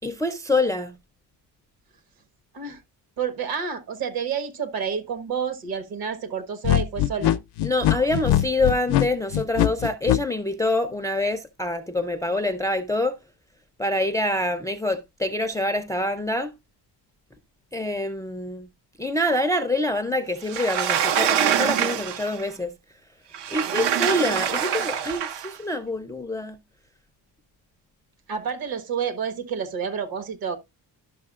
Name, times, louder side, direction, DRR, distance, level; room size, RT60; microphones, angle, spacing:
voice 1, 0.0-1.0 7.6-13.2 13.8-16.5 17.7-18.7 19.0-22.7 23.5-26.6, left 1 dB, 10° left, 0.3 m, -26 dB
voice 2, 3.2-7.4 28.3-30.6, right 6 dB, 60° right, 1.3 m, -29 dB
sound 1, 6.6-10.2, left 12 dB, 70° left, 0.5 m, -21 dB
Sliding door, 20.5-22.4 23.3-25.5, right 9 dB, 85° right, 0.8 m, -24 dB
11.5 x 6.1 x 2.4 m
cardioid pair, 140°, 41 cm